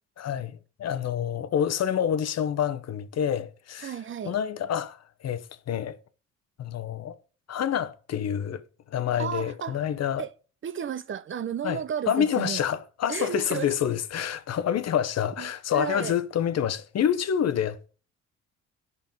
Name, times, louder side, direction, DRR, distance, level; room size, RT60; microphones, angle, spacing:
voice 1, 0.2-3.9 4.2-6.0 6.6-7.2 7.5-10.2 11.6-17.9, left 9 dB, 60° left, 1.0 m, -28 dB
voice 2, 3.8-4.3 9.2-9.8 10.2-10.3 10.6-12.6 13.1-13.7 15.4-16.2, right 8 dB, 40° right, 0.6 m, -33 dB
11.0 x 5.6 x 5.4 m
cardioid pair, 90°, 30 cm